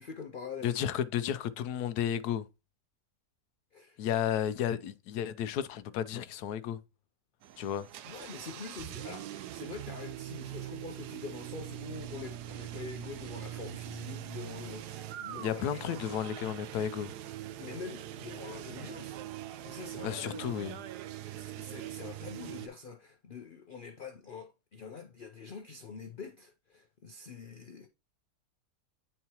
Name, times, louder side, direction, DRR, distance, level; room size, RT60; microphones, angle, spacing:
voice 1, 0.0-0.7 3.7-4.0 8.0-15.8 17.6-20.5 21.1-27.9, left 5 dB, 50° left, 0.6 m, -45 dB
voice 2, 0.6-2.5 4.0-6.8 7.6-7.9 15.4-17.1 20.0-20.8, left 9 dB, 80° left, 1.1 m, -33 dB
sound 1, 7.4-22.7, right 13 dB, 85° right, 1.2 m, -42 dB
9.4 x 4.6 x 2.9 m
omnidirectional pair, 1.7 m